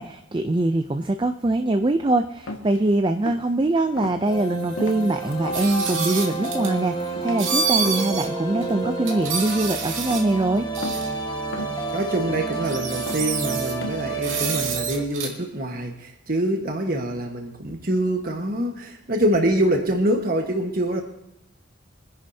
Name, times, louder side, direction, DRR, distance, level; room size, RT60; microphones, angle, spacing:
voice 1, 0.0-10.7, right 2 dB, 25° right, 8 dB, 0.4 m, -23 dB
sound 1, 2.5-2.8 3.2-3.5 4.0-4.2 4.8-5.7 6.2-6.6 7.0-7.4 7.9-8.2 8.6-9.0 9.2-9.6 10.1-10.4 10.8-11.2 11.5-11.9 12.3-12.8 13.1-13.3 13.8-14.1, left 2 dB, 70° left, 1.5 m, -36 dB
sound 2, 4.3-15.0, right 3 dB, 20° left, 1.4 m, -30 dB
sound 3, 5.5-6.7 7.4-8.3 8.6-8.7 9.1-10.3 10.7-11.1 12.1-12.2 12.5-13.7 14.2-15.3, right 5 dB, 70° right, 2.4 m, -28 dB
voice 2, 11.9-21.0, right 1 dB, 45° right, 2 dB, 1.3 m, -25 dB
24.0 x 10.5 x 2.8 m, 0.82 s
head